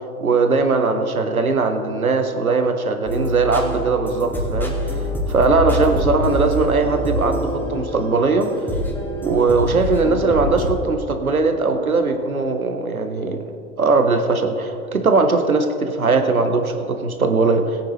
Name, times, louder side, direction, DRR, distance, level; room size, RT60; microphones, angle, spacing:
voice 1, 0.2-4.7 5.3-8.5 9.2-13.4 13.8-17.9, right 3 dB, 85° right, 6 dB, 1.2 m, -19 dB
sound 1, 3.1-10.7, equal, 5° left, 2.5 m, -25 dB
20.5 x 8.7 x 3.3 m, 2.5 s
figure-of-eight pair, 85°, 42 cm